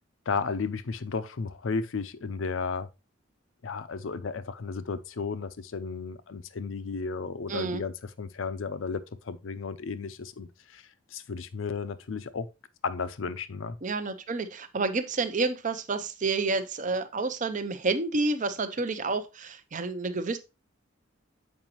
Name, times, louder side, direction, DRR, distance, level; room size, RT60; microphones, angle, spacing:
voice 1, 0.3-2.9 3.6-12.5 12.8-13.8, left 5 dB, 75° left, 0.6 m, -34 dB
voice 2, 7.5-7.8 13.8-20.4, right 3 dB, 40° right, 0.6 m, -29 dB
7.3 x 4.9 x 3.0 m
head